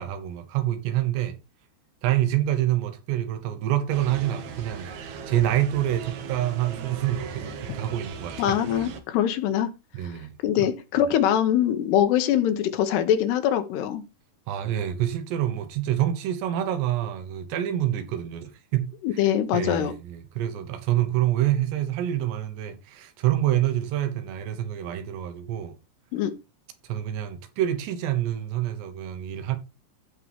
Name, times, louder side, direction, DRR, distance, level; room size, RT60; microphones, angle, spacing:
voice 1, 0.0-1.3 2.0-8.6 9.9-10.7 14.5-19.3 19.5-25.8 26.9-29.6, right 12 dB, 85° right, 3.2 m, -27 dB
sound 1, 3.9-9.0, right 5 dB, 70° right, 1.7 m, -38 dB
voice 2, 8.4-9.7 10.4-14.0 19.0-19.9 26.1-26.3, left 10 dB, 80° left, 2.9 m, -23 dB
14.0 x 5.0 x 3.5 m
omnidirectional pair, 4.8 m